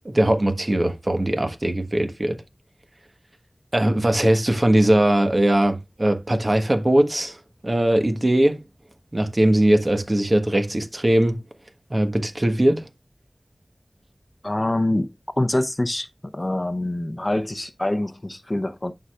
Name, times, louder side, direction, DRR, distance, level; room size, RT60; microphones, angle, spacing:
voice 1, 0.0-2.4 3.7-7.4 7.6-8.6 9.1-11.4 11.9-12.9, right 1 dB, 45° right, 1.3 m, -20 dB
voice 2, 14.4-15.1 15.4-16.1 16.3-18.9, left 1 dB, 35° left, 0.7 m, -25 dB
11.0 x 4.8 x 2.4 m
wide cardioid pair, 40°, 0 cm